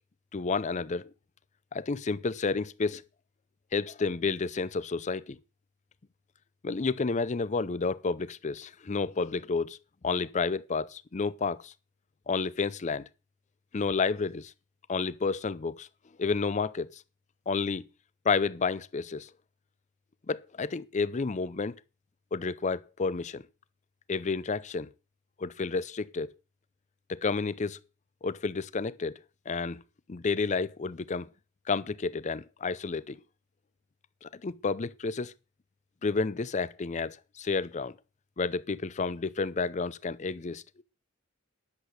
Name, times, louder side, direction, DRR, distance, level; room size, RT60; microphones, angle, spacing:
voice 1, 0.3-1.1 1.7-3.0 3.7-5.4 6.6-9.8 10.0-11.7 12.3-13.0 13.7-14.5 14.9-15.9 16.2-17.0 17.5-17.9 18.2-19.3 20.3-21.8 22.3-23.4 24.1-24.9 25.4-26.3 27.1-27.8 28.2-29.8 30.1-31.3 31.7-33.2 34.2-35.3 36.0-38.0 38.4-40.8, left 4 dB, 35° left, 0.5 m, -30 dB
10.5 x 7.7 x 6.5 m
head